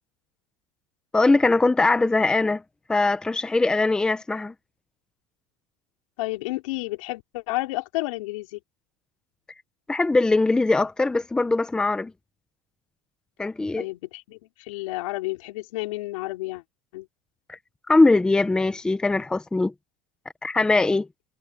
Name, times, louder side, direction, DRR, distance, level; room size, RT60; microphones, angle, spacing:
voice 1, 1.1-2.6 2.9-4.5 9.9-12.1 13.4-13.8 17.5-17.6 17.9-19.7 20.4-21.1, left 3 dB, 5° left, 0.7 m, -21 dB
voice 2, 6.2-8.6 13.8-16.6 16.9-17.1, left 20 dB, 90° left, 4.7 m, -31 dB
cardioid pair, 180°, 16 cm